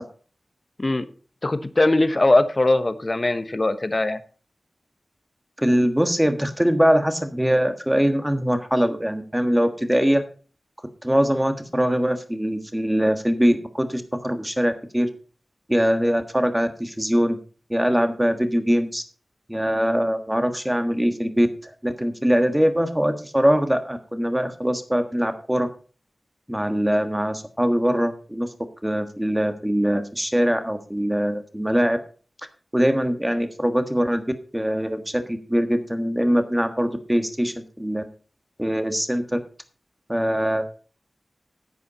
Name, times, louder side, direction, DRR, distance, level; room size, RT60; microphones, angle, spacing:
voice 1, 1.4-4.2, left 2 dB, 35° left, 11 dB, 1.0 m, -20 dB
voice 2, 5.6-10.2 11.0-15.1 15.7-17.4 17.7-19.0 19.5-21.5 21.8-25.7 26.5-28.5 28.8-32.0 32.7-34.2 34.5-38.0 38.6-39.4 40.1-40.7, equal, 10° right, 8 dB, 1.4 m, -22 dB
10.5 x 8.5 x 4.2 m, 0.38 s
wide cardioid pair, 70°, 0 cm